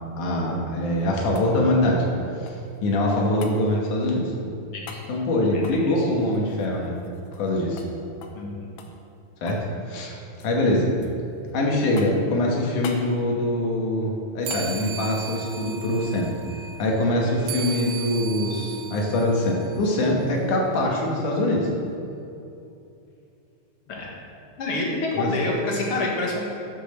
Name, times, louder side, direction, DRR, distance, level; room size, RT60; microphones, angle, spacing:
voice 1, 0.2-2.0 2.4-4.3 5.1-6.9 7.4-7.8 9.4-9.6 9.9-10.2 10.4-10.9 11.5-16.3 16.8-21.7 25.1-25.3, left 1 dB, 75° left, -1 dB, 2.9 m, -23 dB
sound 1, 0.7-2.8 3.4-3.6 4.8-5.1 5.6-7.5 7.8-7.9 8.2-8.4 8.8-9.7 10.0-10.6 11.0-11.5 12.0-12.3 12.8-13.1 14.5-14.7 17.1-17.2, left 6 dB, 90° left, 2.5 m, -42 dB
voice 2, 8.3-8.7 23.9-24.1 24.6-26.5, left 2 dB, 50° left, -2 dB, 2.2 m, -27 dB
sound 2, 14.4-20.3, right 7 dB, 75° right, 2.0 m, -37 dB
10.0 x 5.9 x 6.7 m, 2.7 s
omnidirectional pair, 3.7 m